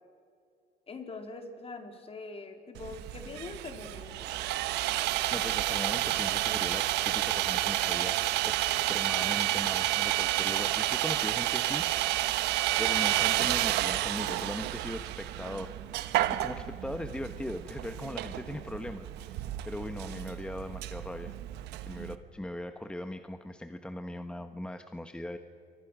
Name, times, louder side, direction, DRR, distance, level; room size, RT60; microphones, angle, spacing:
voice 1, 0.9-4.3, left 3 dB, 35° left, 5 dB, 3.9 m, -43 dB
Sawing, 2.8-22.1, right 15 dB, 90° right, 1.1 m, -30 dB
voice 2, 5.0-8.2 8.4-11.8 12.1-12.2 12.8-15.7 16.4-21.3 21.8-25.4, left 1 dB, 5° left, 8 dB, 1.1 m, -39 dB
28.5 x 24.5 x 6.2 m, 2.4 s
cardioid pair, 110°, 17 cm